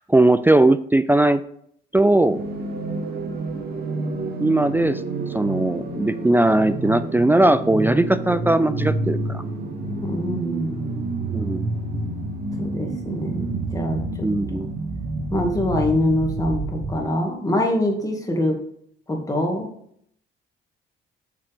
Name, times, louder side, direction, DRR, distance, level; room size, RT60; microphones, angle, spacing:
voice 1, 0.0-1.4 1.9-2.4 4.4-9.4 11.3-11.7 14.2-14.7, right 2 dB, 10° right, 13 dB, 0.4 m, -19 dB
sound 1, 2.1-17.1, right 2 dB, 50° right, 1.7 m, -29 dB
voice 2, 10.0-11.0 12.6-14.3 15.3-18.6 19.1-19.7, left 1 dB, 15° left, 1 dB, 2.2 m, -24 dB
7.4 x 6.3 x 3.6 m, 0.67 s
cardioid pair, 90°, 20 cm